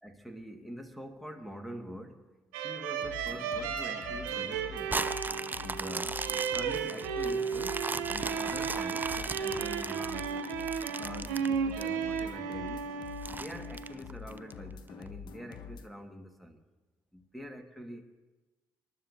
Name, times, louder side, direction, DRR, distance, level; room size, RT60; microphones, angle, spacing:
voice 1, 0.0-2.3 2.6-5.2 5.6-6.2 6.5-10.3 11.0-13.0 13.4-16.6 17.1-18.2, equal, ahead, 5 dB, 1.9 m, -45 dB
sound 1, 2.5-13.9, right 7 dB, 80° right, 0.8 m, -34 dB
sound 2, 3.0-15.9, left 7 dB, 60° left, 0.8 m, -47 dB
sound 3, 4.9-12.2 12.7-12.8 13.2-14.5 15.1-15.2, right 3 dB, 20° right, 0.5 m, -37 dB
26.5 x 12.0 x 2.8 m, 1.2 s
hypercardioid pair, 45°, 9 cm